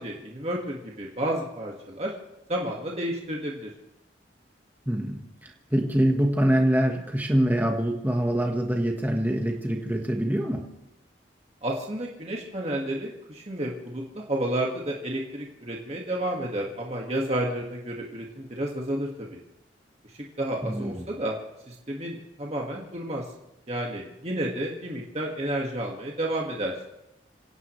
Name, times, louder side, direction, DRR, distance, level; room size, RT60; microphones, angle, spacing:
voice 1, 0.0-2.1 2.5-3.7 11.6-19.4 20.4-21.3 21.7-23.3 23.7-26.8, right 1 dB, 35° right, -1 dB, 1.8 m, -31 dB
voice 2, 4.9-10.6 20.6-21.1, right 1 dB, 10° right, 2 dB, 1.3 m, -25 dB
26.5 x 17.0 x 3.2 m, 0.90 s
head